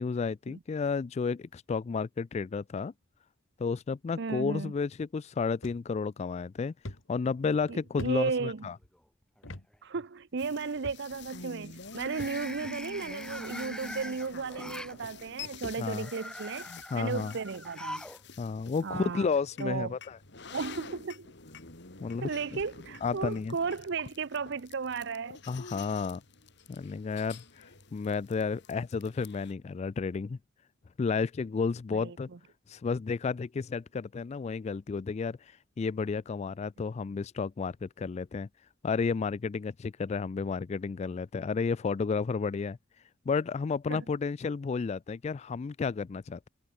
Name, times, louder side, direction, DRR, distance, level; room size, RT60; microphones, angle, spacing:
voice 1, 0.0-2.9 3.6-6.7 7.1-8.8 15.8-16.1 16.7-17.3 18.4-20.2 22.0-22.3 23.0-23.6 25.5-26.2 26.7-30.4 31.0-32.3 32.7-38.5 38.8-42.8 43.3-46.5, left 5 dB, 35° left, 0.3 m, -32 dB
voice 2, 4.2-4.7 7.7-8.6 9.8-16.7 16.9-18.0 18.8-19.3 19.6-20.0 20.5-21.3 22.2-25.4 31.9-32.1 43.9-44.0, right 5 dB, 60° right, 0.7 m, -34 dB
sound 1, 5.6-5.8 6.3-6.4 6.8-8.9 9.4-9.7 9.9-10.1 10.8-11.3 12.2-12.7 13.6-13.7 14.7-14.8 15.0-16.2 16.6-16.9 17.7-17.8 18.3-18.4 18.7-18.8 19.2-19.4, left 1 dB, 80° left, 2.5 m, -45 dB
sound 2, 8.6-9.0 9.4-9.8 11.9-15.0 15.8-18.2 18.5-18.6 19.7-19.8, left 1 dB, 5° left, 1.8 m, -44 dB
sound 3, 10.4-29.5, left 4 dB, 60° left, 4.0 m, -48 dB
head